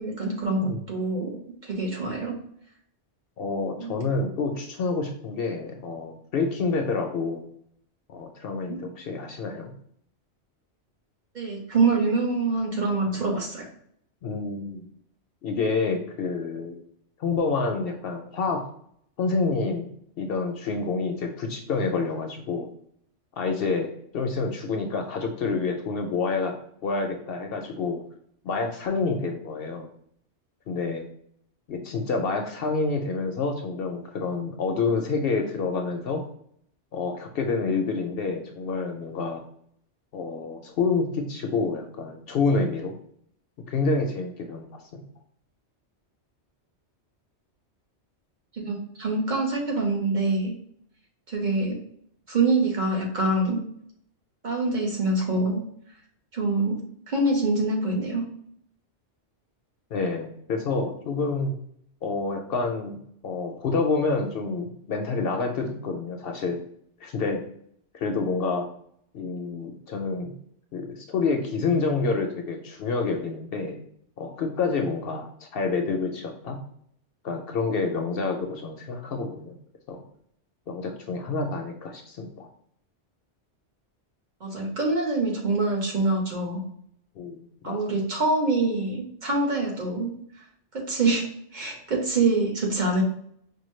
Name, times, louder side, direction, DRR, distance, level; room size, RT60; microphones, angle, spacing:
voice 1, 0.0-1.3 1.6-2.4 3.8-3.9 8.7-8.8 11.3-13.7 48.6-50.5 51.3-51.7 52.3-53.6 54.4-55.6 56.3-56.7 57.1-58.2 84.4-86.6 87.6-90.1 90.7-91.2 91.5-93.0, right 3 dB, 45° right, 0 dB, 1.1 m, -25 dB
voice 2, 3.4-7.4 8.1-9.7 14.2-14.8 15.4-16.8 17.2-18.6 19.2-19.9 20.2-22.7 23.4-26.5 26.8-28.0 28.4-29.9 30.7-31.1 31.7-36.3 36.9-39.4 40.1-42.9 43.7-45.0 59.9-61.5 62.0-63.0 63.2-66.6 67.0-67.4 67.9-68.7 69.1-70.3 70.7-73.8 74.2-76.6 77.2-79.6 79.9-80.0 80.7-82.5 87.2-88.0, left 4 dB, 65° left, 3 dB, 0.7 m, -28 dB
4.9 x 2.2 x 3.1 m, 0.67 s
omnidirectional pair, 1.2 m